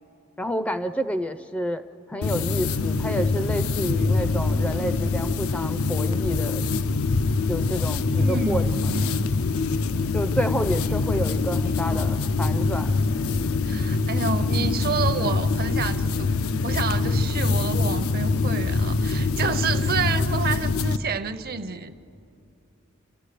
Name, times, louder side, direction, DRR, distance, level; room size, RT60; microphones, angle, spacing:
voice 1, 0.4-1.8 2.1-6.6 7.5-8.7 10.1-12.9, equal, 5° left, 0.4 m, -29 dB
sound 1, 2.2-21.0, left 3 dB, 85° left, 0.5 m, -24 dB
voice 2, 8.2-9.3 11.2-11.4 11.8-12.1 13.6-16.3 16.6-22.0, right 5 dB, 45° right, 0.6 m, -29 dB
30.0 x 14.0 x 6.7 m
head